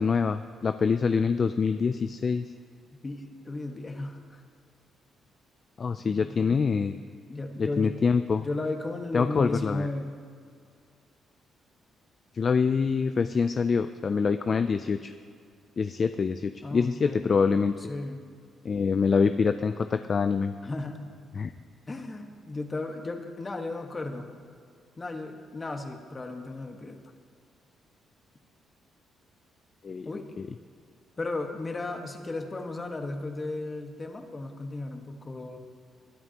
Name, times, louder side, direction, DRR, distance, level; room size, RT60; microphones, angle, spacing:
voice 1, 0.0-2.5 5.8-7.0 7.8-8.5 9.1-9.9 12.3-15.1 15.8-17.8 18.6-20.5 21.4-21.5 29.8-30.1, left 5 dB, 40° left, 9 dB, 0.4 m, -25 dB
voice 2, 3.0-4.4 6.0-6.4 7.3-8.0 8.4-10.2 16.6-17.3 17.8-18.2 20.6-21.0 21.9-24.3 25.0-27.0 30.0-30.3 31.2-35.6, left 2 dB, 25° left, 4 dB, 1.5 m, -35 dB
21.0 x 11.0 x 3.0 m, 2.2 s
cardioid pair, 90°, 0 cm